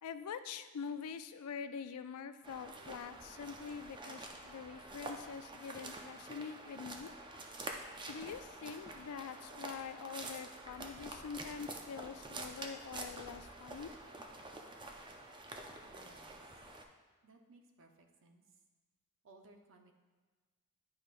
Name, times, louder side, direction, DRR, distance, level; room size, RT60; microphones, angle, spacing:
voice 1, 0.0-7.1 8.1-13.9, left 6 dB, 85° left, 11 dB, 0.4 m, -45 dB
sound 1, 2.4-16.8, right 2 dB, 20° right, 0.5 m, -48 dB
voice 2, 15.8-16.4 17.2-18.6 19.2-19.9, right 2 dB, 60° right, 4 dB, 0.7 m, -62 dB
10.0 x 4.7 x 2.5 m, 1.3 s
head